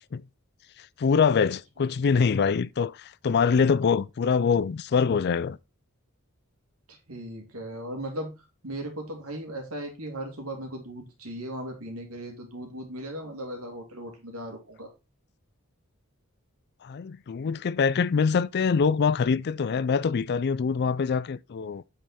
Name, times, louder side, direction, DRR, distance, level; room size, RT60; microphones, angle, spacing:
voice 1, 0.8-5.6 16.8-21.8, left 5 dB, 50° left, 0.4 m, -24 dB
voice 2, 6.9-8.3 8.6-14.9, right 1 dB, 85° right, 2.8 m, -37 dB
8.0 x 5.6 x 4.2 m
head